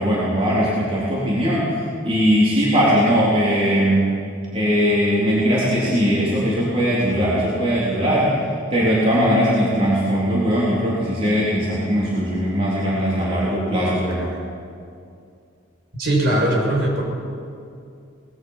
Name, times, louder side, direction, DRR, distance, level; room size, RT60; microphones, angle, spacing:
voice 1, 0.0-4.0 4.5-8.3 8.7-14.3, equal, 30° right, -7 dB, 3.8 m, -20 dB
voice 2, 16.0-17.0, right 1 dB, 55° right, -2 dB, 6.3 m, -19 dB
23.5 x 20.0 x 5.8 m, 2.4 s
head